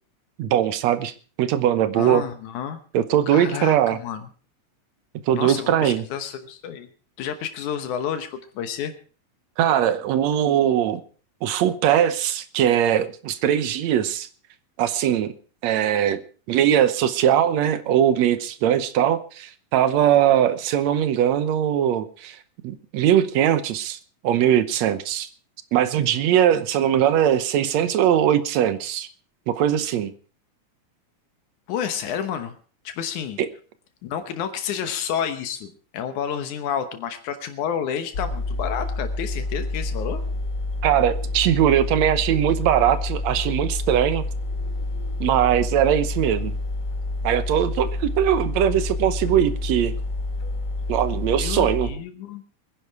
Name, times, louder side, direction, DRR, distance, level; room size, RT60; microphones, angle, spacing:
voice 1, 0.4-1.1 1.4-2.2 2.9-4.0 5.3-6.0 9.6-11.0 11.4-14.3 14.8-15.3 15.6-16.2 16.5-22.4 22.6-24.0 24.2-25.3 25.7-29.1 29.5-30.1 33.4-33.5 40.8-44.2 45.2-46.5 47.2-49.9 50.9-51.9, right 10 dB, 70° right, 13 dB, 2.1 m, -20 dB
voice 2, 1.9-2.8 3.3-4.2 5.3-6.9 7.2-8.9 31.7-32.6 32.8-33.4 34.0-40.2 51.4-52.4, left 8 dB, 85° left, 9 dB, 2.5 m, -30 dB
sound 1, 38.1-51.9, left 2 dB, 45° left, 1.9 m, -28 dB
22.5 x 10.5 x 4.7 m, 0.40 s
omnidirectional pair, 3.4 m